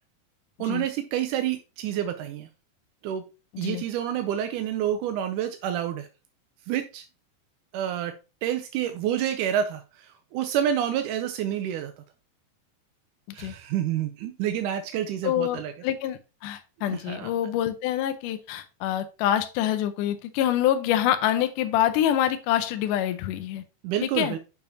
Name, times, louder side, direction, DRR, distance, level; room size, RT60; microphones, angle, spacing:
voice 1, 0.6-2.5 3.0-3.2 3.6-6.1 6.7-7.0 7.7-8.1 8.4-11.9 13.3-15.7 16.9-17.3 23.8-24.4, right 10 dB, 80° right, 7 dB, 1.8 m, -28 dB
voice 2, 15.2-23.6 24.0-24.4, left 11 dB, 80° left, 9 dB, 1.9 m, -26 dB
6.8 x 6.8 x 2.8 m, 0.30 s
omnidirectional pair, 4.4 m